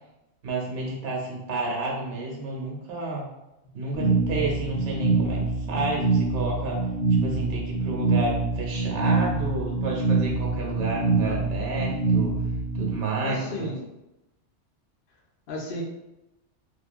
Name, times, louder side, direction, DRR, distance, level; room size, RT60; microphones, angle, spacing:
voice 1, 0.4-3.3 3.7-12.3 12.7-13.7, right 2 dB, 65° right, -2 dB, 0.9 m, -31 dB
sound 1, 3.9-12.9, right 3 dB, 85° left, 0.9 m, -25 dB
voice 2, 7.2-7.6 11.2-11.3 13.2-13.8 15.5-15.8, left 2 dB, 60° left, -1 dB, 0.7 m, -35 dB
2.6 x 2.4 x 2.2 m, 0.92 s
omnidirectional pair, 1.2 m